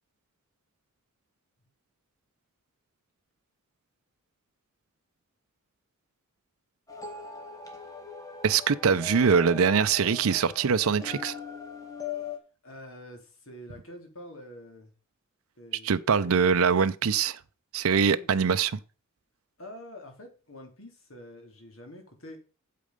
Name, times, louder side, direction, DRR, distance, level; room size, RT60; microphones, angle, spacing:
sound 1, 6.9-12.4, left 6 dB, 15° left, 1.8 m, -40 dB
voice 1, 8.4-11.3 15.8-17.4 17.7-18.8, right 6 dB, 80° right, 0.6 m, -23 dB
voice 2, 12.6-14.9 15.6-15.9 17.9-18.3 19.6-22.4, left 1 dB, 70° left, 3.0 m, -46 dB
8.4 x 7.6 x 5.2 m
head